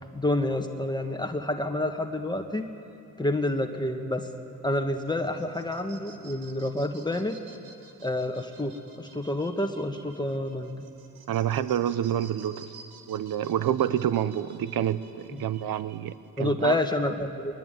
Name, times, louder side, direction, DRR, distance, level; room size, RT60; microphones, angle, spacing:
voice 1, 0.1-2.6 3.2-4.3 4.6-7.4 8.0-10.8 15.3-15.5 16.4-17.5, left 1 dB, 10° left, 4 dB, 1.6 m, -28 dB
sound 1, 5.0-16.3, right 5 dB, 90° right, 2.7 m, -53 dB
voice 2, 11.3-12.7 13.1-16.8, right 10 dB, 65° right, 14 dB, 0.9 m, -28 dB
23.5 x 21.5 x 9.3 m, 2.7 s
cardioid pair, 90°, 38 cm